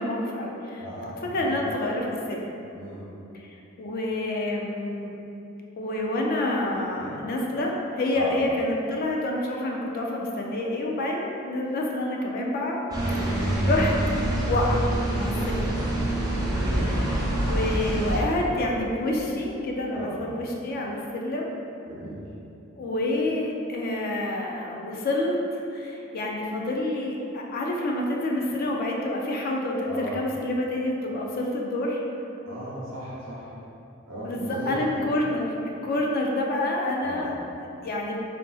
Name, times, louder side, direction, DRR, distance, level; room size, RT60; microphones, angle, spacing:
voice 1, 0.0-0.8 1.3-2.4 3.3-3.5 3.8-5.2 5.8-12.8 13.2-13.9 14.5-15.7 16.6-17.1 17.4-21.5 22.8-25.3 25.7-32.0 34.2-37.3 37.8-38.2, left 1 dB, 45° left, -1 dB, 0.3 m, -28 dB
voice 2, 0.8-1.6 2.7-3.1 6.9-7.1 8.1-8.4 13.0-13.5 15.2-16.2 16.5-17.2 19.9-20.2 21.9-22.2 29.8-30.2 32.5-33.6 34.0-35.1 37.0-37.3, equal, 70° right, -7 dB, 0.9 m, -37 dB
sound 1, 12.9-18.2, right 1 dB, 20° right, 0.4 m, -25 dB
3.7 x 2.5 x 2.3 m, 2.8 s
head